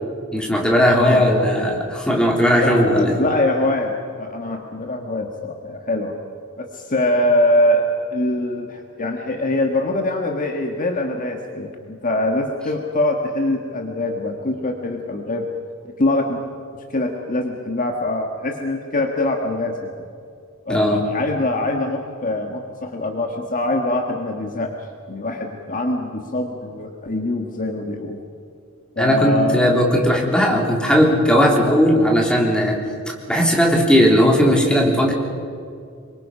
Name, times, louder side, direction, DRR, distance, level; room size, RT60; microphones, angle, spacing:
voice 1, 0.3-3.2 20.7-21.0 29.0-32.8 33.3-35.1, equal, 5° left, -1 dB, 3.4 m, -17 dB
voice 2, 0.9-1.3 2.6-6.1 6.6-7.8 8.1-15.4 15.8-16.4 16.9-19.9 20.6-24.7 25.1-28.2 28.9-29.6, left 1 dB, 40° left, 3 dB, 1.6 m, -23 dB
26.5 x 23.5 x 5.6 m, 2.4 s
head